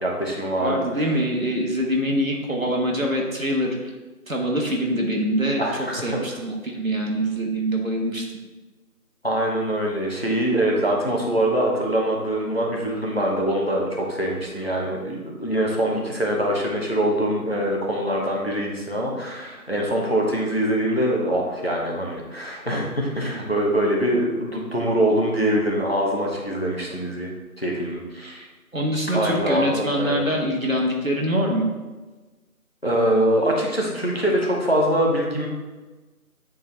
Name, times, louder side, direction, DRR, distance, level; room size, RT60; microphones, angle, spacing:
voice 1, 0.0-1.2 5.6-6.2 9.2-27.3 27.6-28.5 29.1-30.2 32.8-35.5, right 1 dB, 40° left, -1 dB, 1.0 m, -24 dB
voice 2, 0.6-3.8 4.3-8.2 28.7-31.6, equal, 60° right, 0 dB, 1.4 m, -24 dB
9.2 x 3.8 x 3.3 m, 1.2 s
figure-of-eight pair, 180°, 46 cm